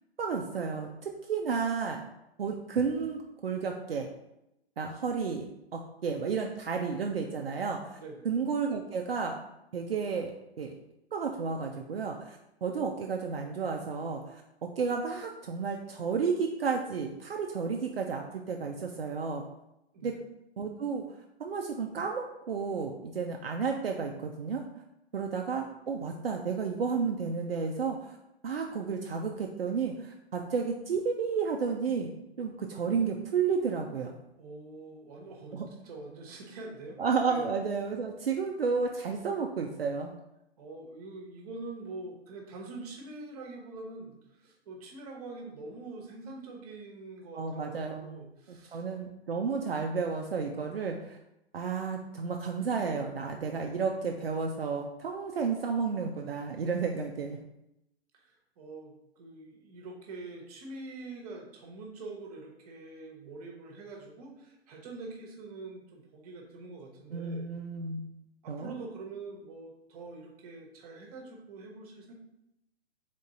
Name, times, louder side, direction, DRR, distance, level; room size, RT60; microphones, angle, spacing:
voice 1, 0.2-2.0 2.4-4.1 4.8-5.5 5.7-8.0 8.2-9.4 9.7-10.7 11.1-19.4 20.0-20.1 20.6-21.0 21.4-24.6 25.1-28.2 28.4-32.1 32.4-34.1 35.5-35.7 37.0-40.1 47.3-48.2 48.5-51.2 51.5-57.4 67.1-68.0 68.5-68.7, right 5 dB, 65° right, 2 dB, 0.6 m, -32 dB
voice 2, 7.9-8.3 19.9-20.2 34.4-37.5 40.6-48.8 58.1-67.5 68.4-72.1, right 3 dB, 35° right, 0 dB, 1.1 m, -45 dB
3.8 x 3.7 x 3.7 m, 0.86 s
figure-of-eight pair, 120°, 32 cm